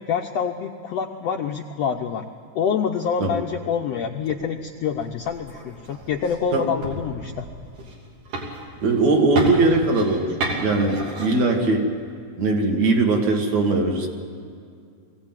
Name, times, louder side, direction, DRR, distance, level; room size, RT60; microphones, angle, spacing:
voice 1, 0.1-2.2 2.5-7.5, left 7 dB, 75° left, 3 dB, 1.5 m, -26 dB
sound 1, 4.2-12.1, right 1 dB, 80° right, 4.6 m, -34 dB
voice 2, 8.8-10.3 10.6-11.9 12.4-14.1, right 3 dB, 60° right, 1 dB, 3.0 m, -20 dB
21.5 x 16.0 x 9.0 m, 2.3 s
omnidirectional pair, 3.7 m